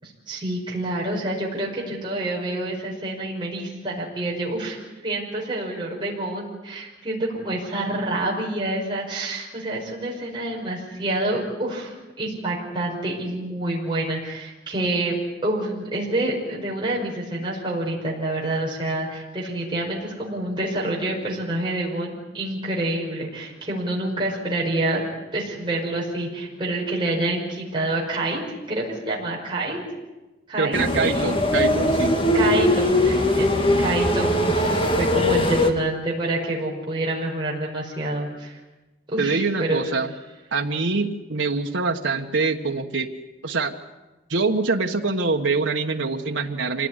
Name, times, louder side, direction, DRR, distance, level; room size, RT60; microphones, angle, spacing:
voice 1, 0.0-15.2 15.4-25.0 25.3-28.4 28.7-29.8 30.5-30.8 31.1-31.3 32.3-38.6 39.1-39.8, right 2 dB, 25° right, -3 dB, 5.4 m, -27 dB
voice 2, 30.6-32.2 39.2-40.1 40.5-43.1 43.4-43.7 44.3-46.9, right 3 dB, 90° right, 3 dB, 1.4 m, -24 dB
sound 1, 30.7-35.7, left 1 dB, 30° left, 2.0 m, -20 dB
26.0 x 18.0 x 9.8 m, 1.1 s
head